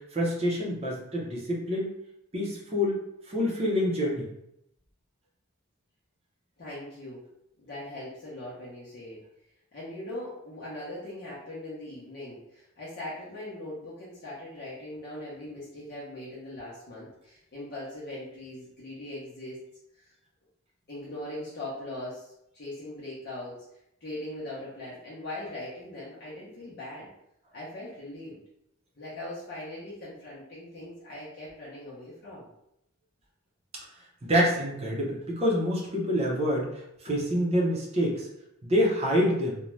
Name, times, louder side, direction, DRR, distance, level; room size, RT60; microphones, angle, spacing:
voice 1, 0.0-1.9 2.3-3.0 3.3-4.3 34.2-38.3 38.6-39.6, equal, 30° right, -3 dB, 0.6 m, -27 dB
voice 2, 6.6-7.2 7.6-9.2 9.7-19.6 20.0-20.1 20.9-23.6 24.0-27.1 27.5-28.4 29.0-32.5 37.1-37.2, left 1 dB, 50° left, -9 dB, 0.7 m, -40 dB
2.6 x 2.2 x 3.1 m, 0.81 s
head